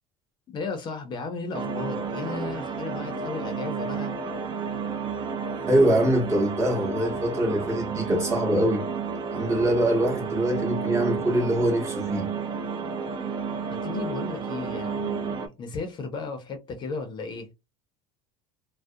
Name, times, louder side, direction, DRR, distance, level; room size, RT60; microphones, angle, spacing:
voice 1, 0.5-4.1 13.7-17.5, left 4 dB, 35° left, 0.6 m, -35 dB
sound 1, 1.5-15.5, right 5 dB, 35° right, 0.5 m, -31 dB
voice 2, 5.6-8.9 9.3-12.3, right 1 dB, 20° right, 0.9 m, -23 dB
2.3 x 2.0 x 2.6 m
supercardioid pair, 120°, 13 cm